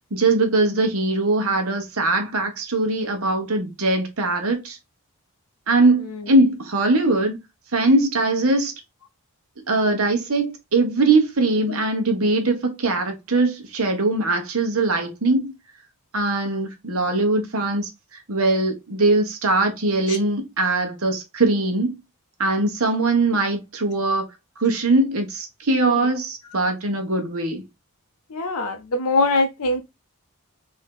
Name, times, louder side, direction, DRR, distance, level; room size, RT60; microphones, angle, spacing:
voice 1, 0.1-4.8 5.7-7.4 7.7-8.7 9.7-15.5 16.1-17.9 18.3-22.0 22.4-24.2 24.6-27.6, right 2 dB, 70° right, 1.1 m, -21 dB
voice 2, 28.3-29.8, left 2 dB, 85° left, 0.6 m, -22 dB
3.5 x 2.8 x 3.7 m
head